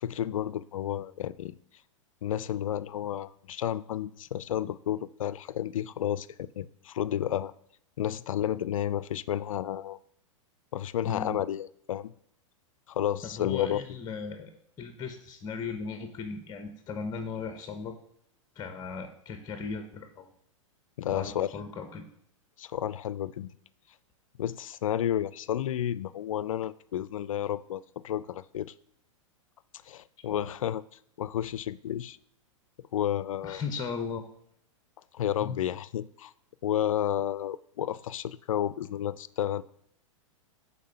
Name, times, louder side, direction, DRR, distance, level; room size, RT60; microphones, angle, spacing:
voice 1, 0.0-1.6 2.2-7.5 8.0-10.0 10.7-12.1 12.9-13.8 21.0-21.5 22.6-23.5 24.4-28.7 29.8-30.8 31.2-32.2 32.8-33.6 35.1-36.3 36.6-39.6, left 11 dB, 80° left, 18 dB, 0.4 m, -31 dB
voice 2, 11.0-11.4 13.3-14.5 14.8-17.9 18.5-20.3 21.1-22.0 30.3-30.5 33.4-34.2 35.4-35.6, left 5 dB, 25° left, 7 dB, 0.9 m, -37 dB
7.4 x 4.1 x 5.6 m, 0.69 s
hypercardioid pair, 115°, 17 cm